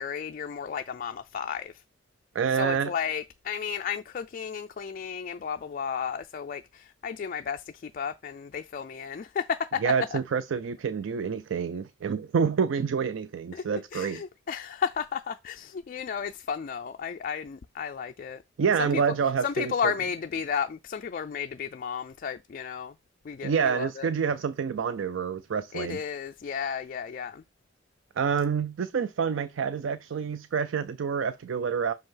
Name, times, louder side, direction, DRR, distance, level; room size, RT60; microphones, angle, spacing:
voice 1, 0.0-1.7 2.5-10.2 13.5-13.6 13.9-18.4 18.8-19.0 19.4-22.9 23.2-24.1 25.7-27.4, left 7 dB, 45° left, 0.3 m, -33 dB
voice 2, 2.3-2.9 9.8-14.2 18.6-19.9 23.4-26.0 28.2-31.9, right 6 dB, 75° right, 0.4 m, -27 dB
6.2 x 5.3 x 3.8 m
head